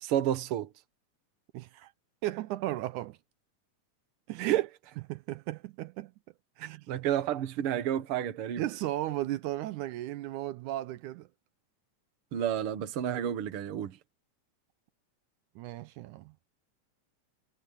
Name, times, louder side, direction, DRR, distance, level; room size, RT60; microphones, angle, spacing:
voice 1, 0.0-0.7 4.4-4.7 6.9-8.6 12.3-14.0, right 10 dB, 55° right, 1.9 m, -30 dB
voice 2, 1.5-1.9 2.2-3.2 4.3-4.6 5.1-6.1 6.6-6.9 8.6-11.3 15.6-16.3, right 15 dB, 80° right, 2.1 m, -35 dB
omnidirectional pair, 3.5 m